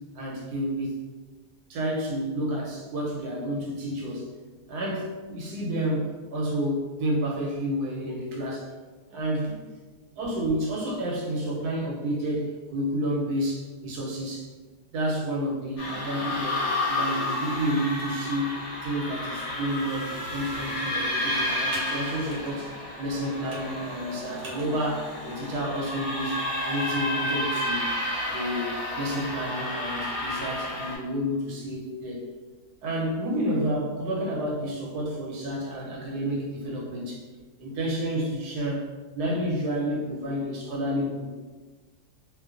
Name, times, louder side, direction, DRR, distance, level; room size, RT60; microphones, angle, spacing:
voice 1, 0.1-0.9 1.7-4.3 4.7-8.7 9.1-9.7 10.1-14.5 14.9-22.7 23.0-26.4 26.6-27.9 28.3-32.2 32.8-37.2 37.6-38.8 39.1-41.3, equal, 85° right, -3 dB, 1.2 m, -30 dB
sound 1, 15.8-31.0, left 1 dB, 55° left, 0.9 m, -31 dB
Computer keyboard, 20.3-27.1, right 1 dB, 65° right, 1.0 m, -49 dB
2.7 x 2.2 x 2.3 m, 1.3 s
omnidirectional pair, 1.7 m